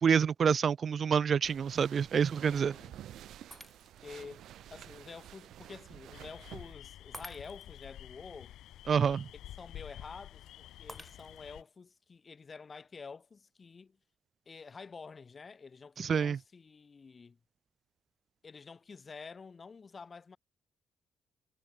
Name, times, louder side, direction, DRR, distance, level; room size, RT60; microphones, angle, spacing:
voice 1, 0.0-2.8 8.9-9.3 16.0-16.4, right 7 dB, 50° right, 0.4 m, -27 dB
sound 1, 1.4-6.7, right 12 dB, 75° right, 1.3 m, -50 dB
voice 2, 2.5-3.0 4.0-4.4 4.7-8.5 9.6-14.0 14.5-17.4 18.4-20.4, left 5 dB, 35° left, 1.3 m, -49 dB
Shatter, 3.5-4.2 4.8-4.9 7.1-7.9 10.9-11.6, equal, ahead, 2.4 m, -50 dB
sound 2, 6.1-11.6, left 13 dB, 80° left, 1.3 m, -50 dB
cardioid pair, 90°, 0 cm